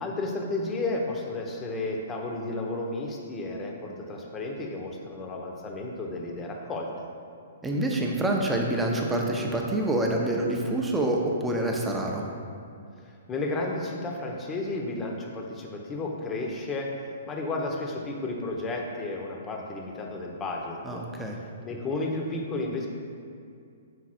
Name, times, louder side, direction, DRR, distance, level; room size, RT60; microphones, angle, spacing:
voice 1, 0.0-6.9 13.0-21.0 21.6-22.9, left 2 dB, 20° left, 0 dB, 0.8 m, -32 dB
voice 2, 7.6-12.2 20.8-21.4, right 1 dB, 10° right, 0 dB, 0.7 m, -27 dB
6.1 x 4.0 x 4.3 m, 2.4 s
figure-of-eight pair, 120°, 0 cm